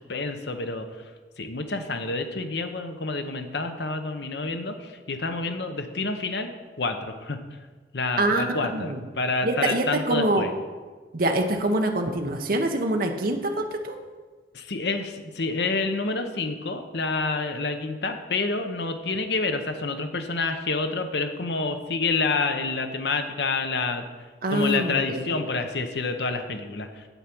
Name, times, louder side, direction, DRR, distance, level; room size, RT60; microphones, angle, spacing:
voice 1, 0.1-1.1 1.4-6.5 6.8-7.4 7.9-10.5 14.5-24.0 24.5-27.1, left 3 dB, 70° left, 7 dB, 0.9 m, -28 dB
voice 2, 8.2-9.0 9.4-10.5 11.1-14.0 24.4-25.2, right 1 dB, 50° right, 3 dB, 0.9 m, -25 dB
8.3 x 8.1 x 6.0 m, 1.4 s
head